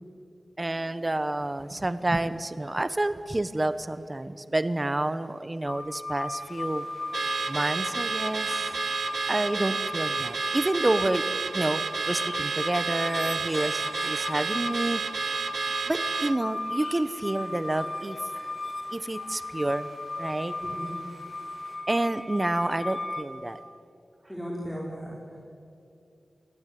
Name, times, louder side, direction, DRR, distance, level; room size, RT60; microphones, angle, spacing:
voice 1, 0.6-6.9 7.5-8.6 9.3-11.2 11.5-11.8 12.1-15.0 15.9-18.2 18.9-19.9 20.2-20.6 21.9-23.6, right 2 dB, 25° right, 13 dB, 1.0 m, -29 dB
sound 1, 5.7-23.2, left 2 dB, 35° left, 1.9 m, -36 dB
sound 2, 6.4-21.8, left 2 dB, 85° left, 6.9 m, -52 dB
Car / Alarm, 7.1-16.4, right 5 dB, 80° right, 0.6 m, -31 dB
voice 2, 20.6-21.0 24.3-25.2, equal, 5° left, -4 dB, 4.4 m, -36 dB
27.5 x 19.5 x 9.3 m, 2.6 s
wide cardioid pair, 105°, 0 cm